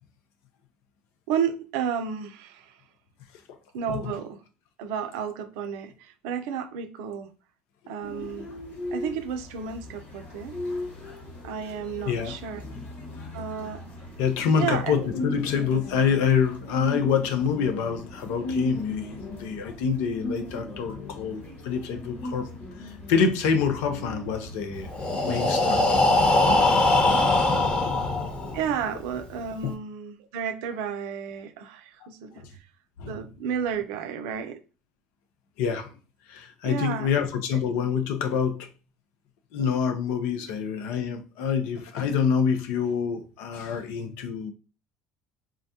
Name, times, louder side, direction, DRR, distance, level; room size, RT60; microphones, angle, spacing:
voice 1, 1.3-2.7 3.7-4.4 4.8-7.3 7.9-8.5 8.9-10.5 11.4-12.6 13.3-13.8 14.6-15.1 26.3-26.5 28.5-32.4 33.1-34.6 36.6-37.1 37.7-38.0, right 7 dB, 75° right, 0.4 m, -32 dB
sound 1, 8.0-26.5, left 1 dB, 55° left, 1.3 m, -38 dB
voice 2, 12.0-12.4 12.6-12.8 13.1-13.2 14.2-22.5 22.8-24.9 25.3-25.9 29.6-29.7 32.4-32.5 33.0-33.2 35.6-35.9 36.3-38.7 39.5-44.5, left 6 dB, 75° left, 0.6 m, -26 dB
Breathing, 24.9-28.7, left 2 dB, 30° left, 1.0 m, -21 dB
3.8 x 2.1 x 2.7 m
hypercardioid pair, 70°, 4 cm